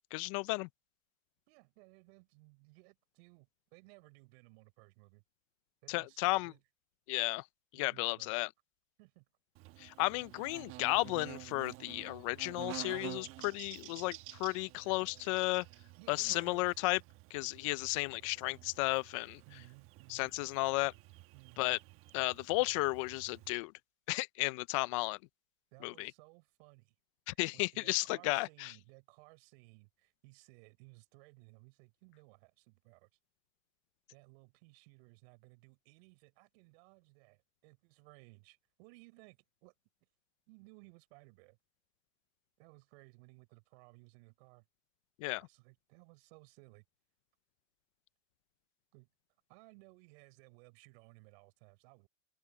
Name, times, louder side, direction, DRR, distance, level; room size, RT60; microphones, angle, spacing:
voice 1, 0.1-0.7 5.9-6.5 7.1-7.4 7.7-8.5 9.8-15.7 16.1-17.0 17.3-19.4 20.1-20.9 21.6-21.8 22.1-23.7 24.1-25.2 25.8-26.1 27.3-28.7 45.2-45.4, left 24 dB, 25° left, 0.4 m, -34 dB
voice 2, 1.5-5.2 5.8-6.6 7.7-8.3 9.0-9.2 16.0-16.8 19.4-20.3 21.3-21.7 25.7-26.9 27.3-33.1 34.1-39.7 40.5-41.6 42.6-44.6 45.4-46.8 48.9-49.1 49.5-52.1, right 29 dB, 45° right, 4.3 m, -60 dB
Buzz, 9.5-23.5, right 19 dB, 30° right, 1.2 m, -51 dB
hypercardioid pair, 130°, 41 cm